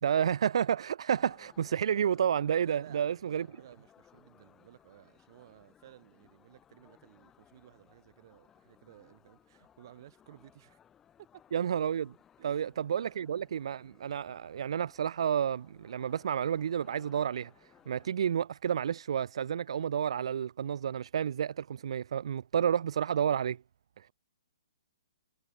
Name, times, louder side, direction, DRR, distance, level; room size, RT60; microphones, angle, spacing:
voice 1, 0.0-3.5 11.5-12.1 12.4-23.6, right 8 dB, 55° right, 1.1 m, -30 dB
sound 1, 1.1-18.1, left 9 dB, 10° left, 4.4 m, -63 dB
voice 2, 2.6-10.8 12.4-12.7 13.0-13.2 24.0-24.1, right 12 dB, 40° right, 5.7 m, -56 dB
hypercardioid pair, 170°, 3 cm